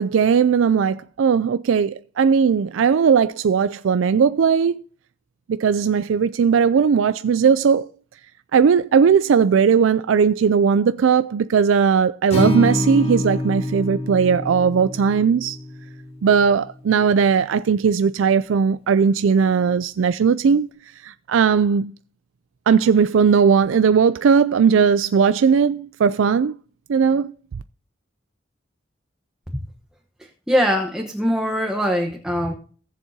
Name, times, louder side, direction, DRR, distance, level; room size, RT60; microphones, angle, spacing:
voice 1, 0.0-4.8 5.6-7.9 8.5-15.6 16.2-20.7 21.0-21.9 22.7-26.5 26.9-27.3, right 6 dB, 80° right, 0.4 m, -18 dB
Acoustic guitar, 12.3-16.5, left 1 dB, 35° left, 5.1 m, -26 dB
voice 2, 30.2-32.5, equal, 5° right, 1.0 m, -22 dB
19.0 x 7.3 x 2.8 m
head